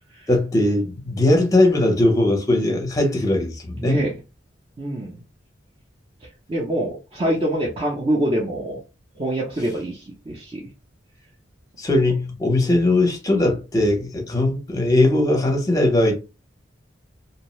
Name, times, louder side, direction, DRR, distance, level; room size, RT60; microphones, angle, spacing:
voice 1, 0.3-4.0 11.8-16.2, left 1 dB, 20° left, 0.7 m, -19 dB
voice 2, 3.7-4.2 4.8-5.1 6.5-8.8 9.2-10.6, right 1 dB, 30° right, 0.6 m, -25 dB
2.6 x 2.1 x 3.0 m
head